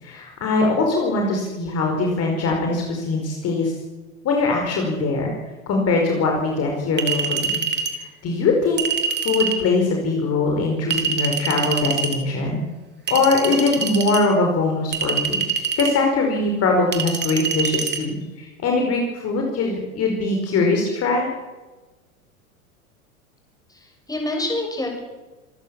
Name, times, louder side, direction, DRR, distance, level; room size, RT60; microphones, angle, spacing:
voice 1, 0.0-3.7 4.2-5.3 5.7-7.6 7.9-8.8 9.2-12.6 13.1-21.3, left 3 dB, 35° left, 1 dB, 5.1 m, -22 dB
Chink clink, 7.0-8.0 8.8-9.6 10.9-12.2 13.1-14.2 14.9-16.0 16.9-18.0, right 6 dB, 25° right, 3.3 m, -25 dB
voice 2, 23.7-25.0, left 1 dB, 10° left, 2 dB, 7.2 m, -27 dB
27.0 x 14.0 x 7.3 m, 1.2 s
figure-of-eight pair, 90°, 42 cm